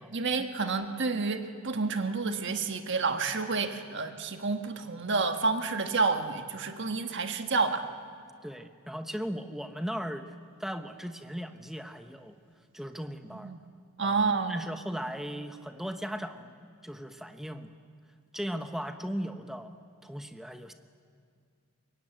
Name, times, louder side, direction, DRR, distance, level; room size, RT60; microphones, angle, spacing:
voice 1, 0.1-7.8 13.4-13.6 14.0-14.6, right 4 dB, 55° right, 6 dB, 1.5 m, -29 dB
voice 2, 8.4-10.3 10.6-12.3 12.7-13.5 14.0-14.2 14.5-16.5 16.8-17.7 18.3-19.7 20.0-20.7, equal, ahead, 7 dB, 1.0 m, -37 dB
24.5 x 22.0 x 9.1 m, 2.2 s
head